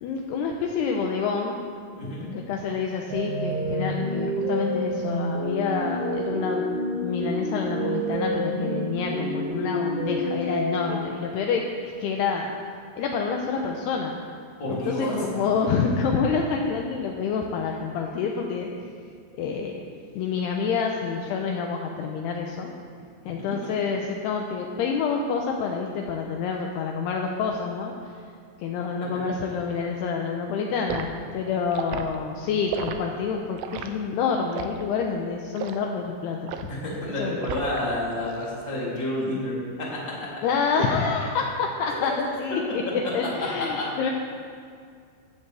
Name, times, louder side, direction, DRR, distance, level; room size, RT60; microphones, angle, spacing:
voice 1, 0.0-1.6 2.3-6.7 7.0-12.5 13.0-14.2 14.7-18.7 19.4-19.8 20.2-22.7 23.3-28.1 28.6-36.6 37.2-37.4 40.4-42.6 42.9-44.1, left 5 dB, 80° left, 1 dB, 2.4 m, -28 dB
voice 2, 1.9-2.3 14.6-15.2 36.7-40.3 43.4-43.9, left 1 dB, 25° left, -6 dB, 3.2 m, -29 dB
sound 1, 3.1-11.0, equal, 65° right, 4.4 m, -28 dB
Liquid, 30.9-31.1 31.7-32.1 32.7-33.0 33.6-33.9 34.5-34.8 35.6-35.8 36.5-36.8 37.4-37.9 38.2-38.5, right 9 dB, 85° right, 3.3 m, -33 dB
15.5 x 15.0 x 3.4 m, 2.2 s
omnidirectional pair, 5.6 m